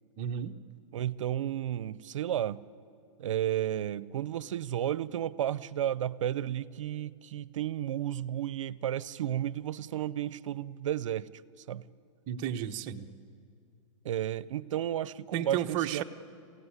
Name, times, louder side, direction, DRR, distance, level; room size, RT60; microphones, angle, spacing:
voice 1, 0.2-0.6 12.3-13.1 15.3-16.0, right 10 dB, 30° right, 6 dB, 1.0 m, -33 dB
voice 2, 0.9-2.6 3.2-11.3 11.7-11.8 14.0-16.0, right 11 dB, 70° right, 19 dB, 0.7 m, -32 dB
28.5 x 16.0 x 9.9 m, 2.4 s
hypercardioid pair, 155°, 17 cm